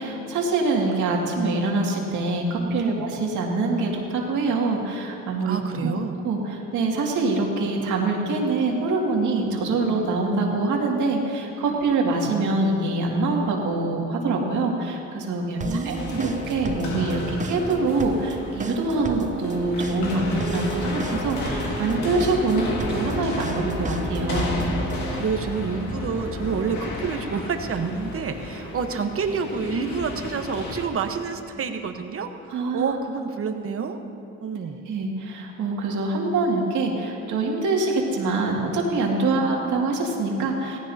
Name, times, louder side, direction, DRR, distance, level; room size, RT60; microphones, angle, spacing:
voice 1, 0.0-5.9 6.2-24.6 32.5-33.0 34.9-40.8, right 3 dB, 75° right, -1 dB, 2.3 m, -24 dB
voice 2, 5.5-6.2 15.6-16.3 25.1-34.0 34.4-34.8 39.2-39.5, right 5 dB, 45° right, 6 dB, 1.1 m, -28 dB
sound 1, 15.6-25.2, right 4 dB, 25° right, 0.6 m, -34 dB
sound 2, 15.9-30.8, left 2 dB, 70° left, 2.1 m, -32 dB
17.5 x 15.5 x 2.8 m, 2.6 s
cardioid pair, 90°, 30 cm